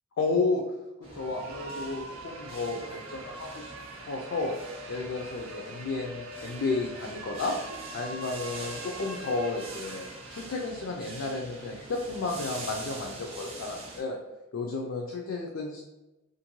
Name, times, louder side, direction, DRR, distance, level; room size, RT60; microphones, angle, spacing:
voice 1, 0.2-0.6 1.1-3.7 4.0-4.5 4.9-7.6 7.9-14.2 14.5-15.8, left 3 dB, 80° left, 0 dB, 0.4 m, -32 dB
sound 1, 1.0-14.0, right 2 dB, 30° right, 0.5 m, -45 dB
sound 2, 1.1-10.9, right 2 dB, 80° right, 0.4 m, -44 dB
2.5 x 2.5 x 2.9 m, 1.0 s
head